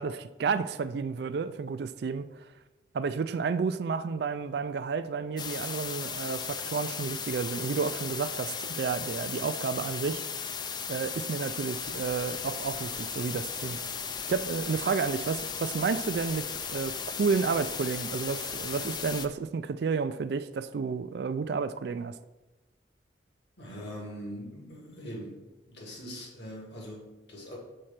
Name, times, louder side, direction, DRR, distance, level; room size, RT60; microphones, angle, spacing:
voice 1, 0.0-2.3 2.9-10.2 10.9-13.8 14.3-22.1, right 5 dB, 60° right, 12 dB, 0.3 m, -31 dB
sound 1, 5.4-19.3, left 6 dB, 25° left, 0.3 m, -36 dB
sound 2, 11.6-19.3, left 2 dB, 45° left, 0.9 m, -50 dB
voice 2, 23.6-25.4 25.7-27.6, equal, 65° left, -2 dB, 2.1 m, -42 dB
6.4 x 4.4 x 5.7 m, 1.1 s
head